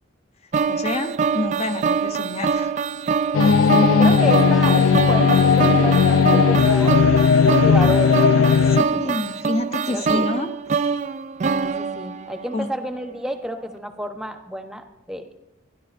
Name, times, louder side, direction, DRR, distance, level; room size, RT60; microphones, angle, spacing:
sound 1, 0.5-12.7, right 5 dB, 35° right, 0.3 m, -24 dB
voice 1, 0.7-2.8 8.6-10.5 12.5-12.7, left 2 dB, 30° left, 8 dB, 0.6 m, -28 dB
sound 2, 3.3-8.8, left 6 dB, 75° left, 0.3 m, -16 dB
voice 2, 3.7-7.0 7.4-9.1 9.9-10.3 11.6-15.3, right 1 dB, 5° right, 5 dB, 0.8 m, -30 dB
24.5 x 11.0 x 2.5 m, 0.93 s
head